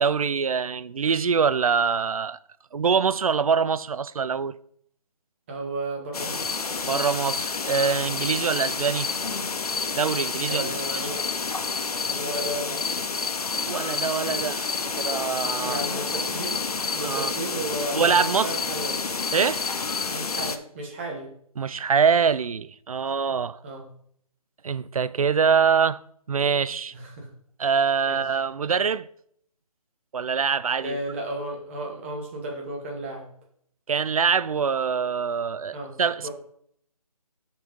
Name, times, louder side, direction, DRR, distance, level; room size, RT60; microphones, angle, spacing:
voice 1, 0.0-2.4 2.7-4.5 6.9-9.1 9.9-11.1 13.7-14.7 15.0-15.8 17.0-17.3 17.9-18.5 19.3-19.7 21.6-23.6 24.6-26.0 26.3-26.9 27.6-29.1 30.1-31.0 33.9-36.3, right 6 dB, 65° right, 0.5 m, -24 dB
voice 2, 5.5-6.5 10.5-11.2 12.1-12.8 15.6-16.6 16.9-19.0 20.1-21.3 23.6-23.9 26.9-27.3 28.0-28.2 30.8-33.3 35.7-35.9 36.2-36.3, right 1 dB, 20° right, 1.4 m, -34 dB
sound 1, 6.1-20.6, left 4 dB, 75° left, 0.8 m, -29 dB
6.7 x 4.7 x 5.2 m
figure-of-eight pair, 165°, 20 cm